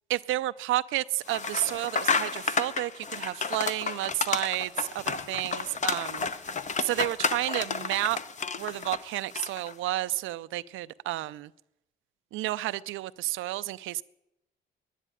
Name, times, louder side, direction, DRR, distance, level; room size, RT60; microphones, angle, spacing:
voice 1, 0.1-6.3 6.8-8.2 8.6-11.5 12.3-14.0, right 16 dB, 85° right, 14 dB, 0.5 m, -31 dB
sound 1, 1.3-9.7, left 5 dB, 35° left, 0.9 m, -31 dB
11.0 x 10.0 x 9.9 m, 0.85 s
cardioid pair, 90°, 20 cm